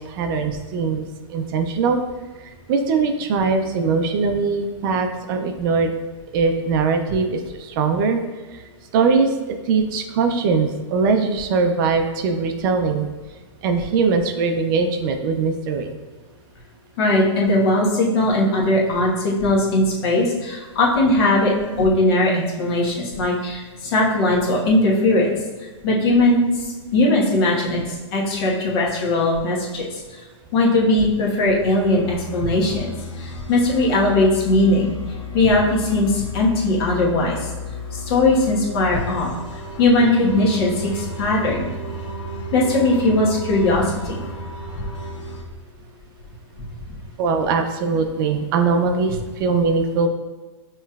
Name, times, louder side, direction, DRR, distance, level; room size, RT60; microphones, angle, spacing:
voice 1, 0.1-1.0 1.3-2.0 2.7-5.9 6.3-8.2 8.9-13.1 13.6-16.0 21.6-21.9 47.2-50.1, right 4 dB, 45° right, 6 dB, 0.5 m, -21 dB
voice 2, 17.0-21.5 21.8-25.4 25.8-30.2 30.5-34.9 35.3-37.5 37.9-39.3 39.8-41.7 42.5-44.2 49.1-49.2, left 2 dB, 55° left, -3 dB, 1.3 m, -19 dB
sound 1, 31.8-45.4, left 1 dB, 80° left, 0.8 m, -33 dB
5.4 x 3.1 x 2.3 m, 1.3 s
hypercardioid pair, 130°, 16 cm